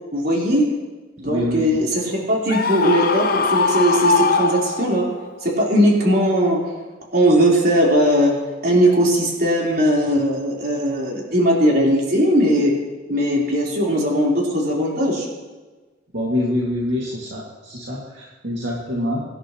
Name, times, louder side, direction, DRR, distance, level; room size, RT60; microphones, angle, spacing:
voice 1, 0.1-0.7 1.2-5.1 5.4-6.6 7.1-8.3 8.6-12.7 13.1-15.3, equal, 55° right, -4 dB, 4.1 m, -18 dB
voice 2, 1.2-1.9 16.1-19.2, left 1 dB, 70° right, -5 dB, 2.3 m, -25 dB
Screaming, 2.5-5.2, left 4 dB, 50° left, 0.7 m, -20 dB
25.0 x 11.0 x 3.1 m, 1.2 s
head